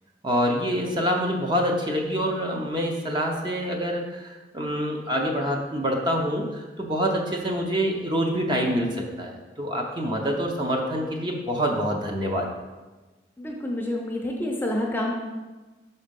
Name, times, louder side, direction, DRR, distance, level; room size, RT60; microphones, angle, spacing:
voice 1, 0.2-12.5, equal, 25° right, 1 dB, 0.7 m, -26 dB
voice 2, 13.4-15.1, left 1 dB, 10° left, 0 dB, 0.6 m, -28 dB
6.2 x 4.2 x 5.2 m, 1.2 s
head